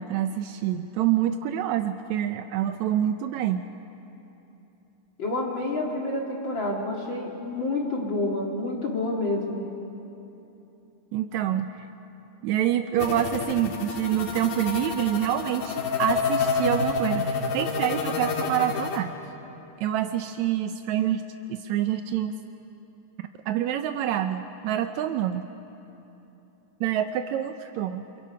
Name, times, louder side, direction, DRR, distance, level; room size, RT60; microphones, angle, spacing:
voice 1, 0.0-3.6 11.1-11.8 12.4-19.1 19.8-21.2 21.5-22.4 23.5-25.5 26.8-28.1, right 11 dB, 85° right, 8 dB, 1.6 m, -26 dB
voice 2, 5.2-9.7, left 2 dB, 40° left, -1 dB, 2.5 m, -28 dB
sound 1, 13.0-19.0, left 4 dB, 85° left, 3.4 m, -28 dB
29.0 x 24.0 x 5.6 m, 3.0 s
omnidirectional pair, 4.0 m